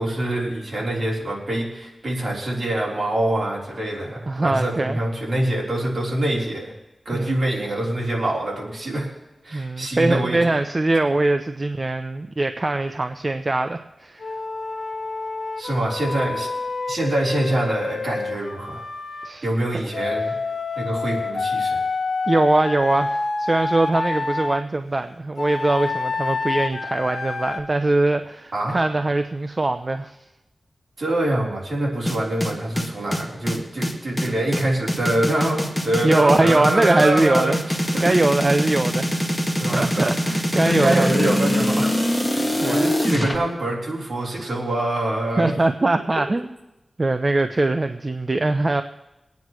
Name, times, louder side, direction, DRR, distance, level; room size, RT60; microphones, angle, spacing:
voice 1, 0.0-6.7 7.1-9.1 9.4-10.4 15.6-16.5 16.9-18.8 19.4-20.4 20.8-21.8 28.5-28.8 31.0-38.2 39.6-41.9 42.3-45.5, right 1 dB, 60° right, -4 dB, 3.7 m, -25 dB
voice 2, 4.3-5.0 7.1-7.4 9.5-14.2 19.2-19.5 22.3-30.2 36.0-37.6 38.0-39.3 39.7-41.4 42.6-42.9 45.4-46.5 47.0-48.8, right 2 dB, 35° right, 8 dB, 0.5 m, -22 dB
Wind instrument woodwind instrument, 14.2-19.3 19.9-24.6 25.4-27.6, left 3 dB, 70° left, 1.0 m, -28 dB
sound 1, 32.1-43.3, equal, 10° left, 2.0 m, -23 dB
23.5 x 9.3 x 3.1 m, 0.98 s
wide cardioid pair, 70°, 0 cm